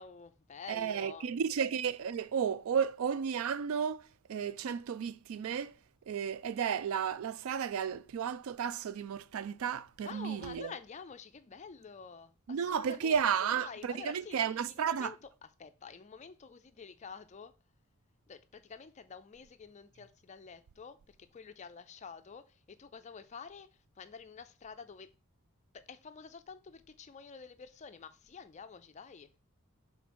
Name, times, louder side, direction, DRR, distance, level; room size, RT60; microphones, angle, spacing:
voice 1, 0.0-1.3 10.0-13.2 13.5-15.2 15.6-17.5 18.3-21.0 21.3-23.7 24.0-25.1 25.7-29.3, left 5 dB, 30° left, 0.4 m, -49 dB
voice 2, 0.7-5.7 6.1-10.7 12.5-15.1, right 7 dB, 70° right, 0.3 m, -33 dB
5.8 x 3.8 x 4.2 m
head